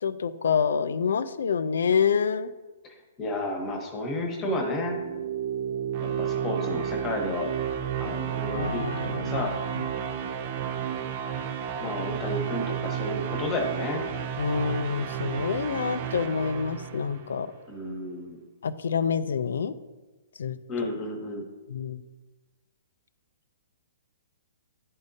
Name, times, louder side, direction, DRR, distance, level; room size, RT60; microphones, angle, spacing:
voice 1, 0.0-2.5 8.5-9.9 14.4-17.5 18.6-19.7 20.4-20.6 21.7-22.0, left 6 dB, 80° left, 13 dB, 0.4 m, -27 dB
voice 2, 3.2-5.0 6.0-7.5 8.0-9.5 11.8-14.0 17.7-18.4 20.7-21.4, left 2 dB, 20° left, 2 dB, 1.1 m, -32 dB
sound 1, 4.4-17.5, right 8 dB, 40° right, 0.4 m, -32 dB
10.5 x 3.6 x 2.7 m, 1.2 s
hypercardioid pair, 155°, 0 cm